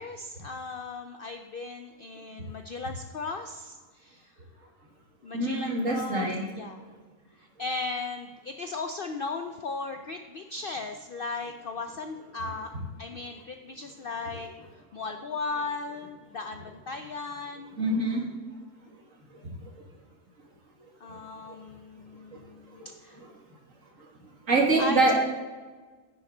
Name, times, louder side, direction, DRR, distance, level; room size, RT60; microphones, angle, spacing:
voice 1, 0.0-4.3 5.2-6.3 6.6-6.8 7.3-12.7 13.0-14.5 14.9-17.7 21.0-23.2 24.8-25.0, left 3 dB, 90° left, 6 dB, 0.4 m, -36 dB
voice 2, 5.3-6.4 17.8-18.2 23.2-23.3 24.5-25.2, right 2 dB, 55° right, -1 dB, 2.4 m, -24 dB
10.0 x 9.6 x 3.8 m, 1.3 s
omnidirectional pair, 1.7 m